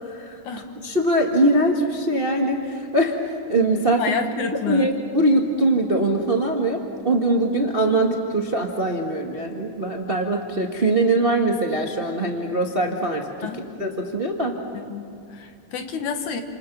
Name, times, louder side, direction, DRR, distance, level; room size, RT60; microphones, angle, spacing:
voice 1, 0.1-0.4 0.8-3.2 3.5-4.2 4.6-13.5 13.8-14.6, right 1 dB, 25° right, 1 dB, 1.2 m, -22 dB
voice 2, 4.0-4.9 13.4-13.7 14.9-16.4, left 6 dB, 70° left, 5 dB, 2.8 m, -29 dB
29.5 x 28.0 x 6.1 m, 2.4 s
omnidirectional pair, 3.6 m